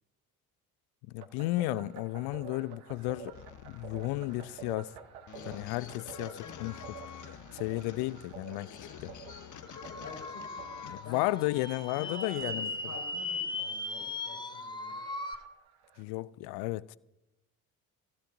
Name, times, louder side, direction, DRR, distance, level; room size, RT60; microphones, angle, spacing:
voice 1, 1.1-4.9 5.4-7.0 7.5-8.8 9.0-9.1 10.8-12.7 16.0-17.0, left 19 dB, 60° left, 0.6 m, -34 dB
sound 1, 1.2-16.0, right 8 dB, 65° right, 1.5 m, -51 dB
sound 2, 3.3-11.3, left 9 dB, 40° left, 1.0 m, -48 dB
sound 3, 9.7-15.3, left 2 dB, 10° left, 1.1 m, -38 dB
voice 2, 9.8-10.5 10.9-11.4 11.9-15.0, left 5 dB, 85° left, 5.1 m, -47 dB
24.0 x 15.5 x 2.7 m
figure-of-eight pair, 45°, 45 cm